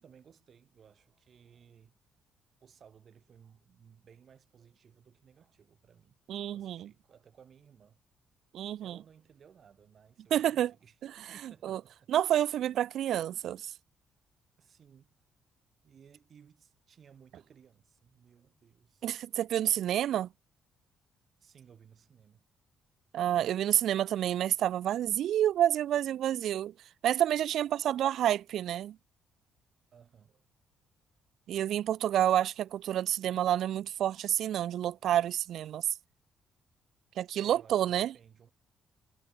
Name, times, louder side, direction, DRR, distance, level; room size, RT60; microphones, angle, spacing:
voice 1, 0.0-2.0 2.6-6.2 6.5-8.0 8.8-11.0 11.3-12.1 14.6-15.1 15.8-19.1 21.4-22.4 29.9-30.5 37.4-38.5, right 7 dB, 55° right, 5.3 m, -59 dB
voice 2, 6.3-6.9 8.5-9.0 10.3-10.7 11.6-11.8 12.1-13.7 19.0-20.3 23.1-26.7 27.0-29.0 31.5-35.9 37.2-38.1, right 11 dB, 70° right, 0.4 m, -29 dB
supercardioid pair, 65°, 0 cm